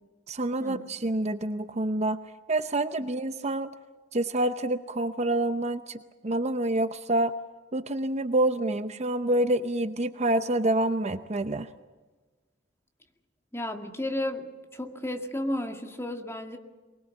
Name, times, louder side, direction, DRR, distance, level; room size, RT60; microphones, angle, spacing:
voice 1, 0.3-2.2 2.5-3.7 4.1-6.0 6.2-7.3 7.7-11.7, right 1 dB, 35° right, 10 dB, 0.8 m, -27 dB
voice 2, 13.5-16.6, left 1 dB, 15° left, 4 dB, 2.1 m, -33 dB
24.0 x 21.0 x 7.2 m, 1.3 s
head